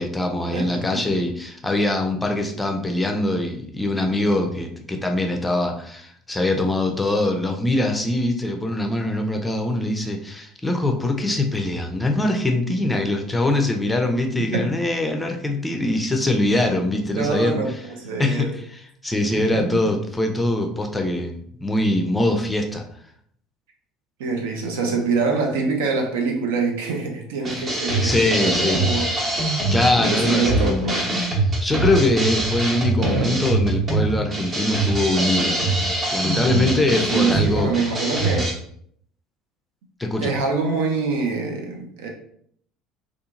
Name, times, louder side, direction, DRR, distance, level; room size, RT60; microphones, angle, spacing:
voice 1, 0.0-17.8 18.2-22.8 28.0-28.8 29.7-30.7 31.6-35.6 36.1-37.7 40.0-40.3, left 2 dB, 15° left, 3 dB, 0.5 m, -23 dB
voice 2, 0.5-1.0 14.5-14.7 17.2-18.5 19.3-19.8 24.2-29.1 30.0-31.1 33.0-33.4 37.1-38.5 40.2-42.1, right 4 dB, 70° right, 2 dB, 0.5 m, -25 dB
sound 1, 27.4-38.5, right 2 dB, 35° right, 0.9 m, -23 dB
2.7 x 2.4 x 2.4 m, 0.64 s
figure-of-eight pair, 65°, 0 cm